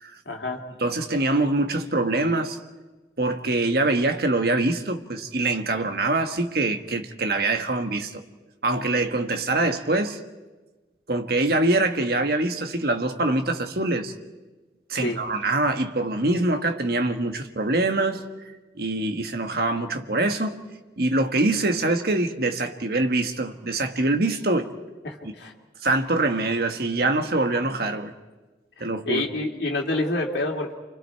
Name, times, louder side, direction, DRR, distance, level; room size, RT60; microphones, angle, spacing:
voice 1, 0.3-0.6 15.0-15.2 25.0-25.5 28.8-30.8, left 2 dB, 70° left, 2.6 m, -28 dB
voice 2, 0.8-2.6 3.2-8.2 8.6-10.2 11.1-14.1 14.9-18.2 18.7-20.6 21.0-24.7 25.8-28.1 28.8-29.2, right 2 dB, 60° right, 1.4 m, -24 dB
29.5 x 24.5 x 4.6 m
head